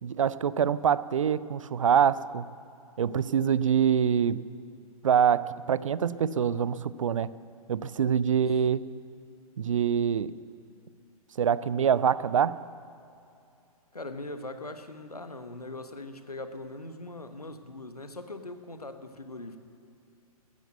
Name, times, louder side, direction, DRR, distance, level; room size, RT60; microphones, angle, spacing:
voice 1, 0.0-2.5 3.0-4.5 5.0-7.3 7.7-8.9 9.6-10.3 11.4-12.6, right 8 dB, 60° right, 18 dB, 0.5 m, -25 dB
voice 2, 13.9-19.6, left 2 dB, 85° left, 9 dB, 1.2 m, -41 dB
15.0 x 10.5 x 7.9 m, 2.7 s
figure-of-eight pair, 120°, 19 cm